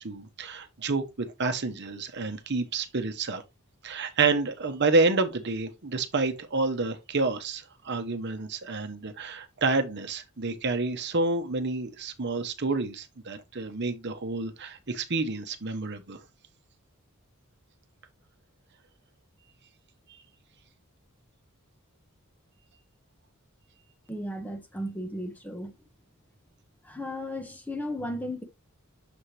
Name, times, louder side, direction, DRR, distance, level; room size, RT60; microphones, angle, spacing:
voice 1, 0.0-3.4 3.8-16.2, right 3 dB, 50° right, 0.9 m, -29 dB
voice 2, 24.1-25.7 26.8-28.4, left 1 dB, 10° left, 0.9 m, -35 dB
7.0 x 4.3 x 3.2 m
head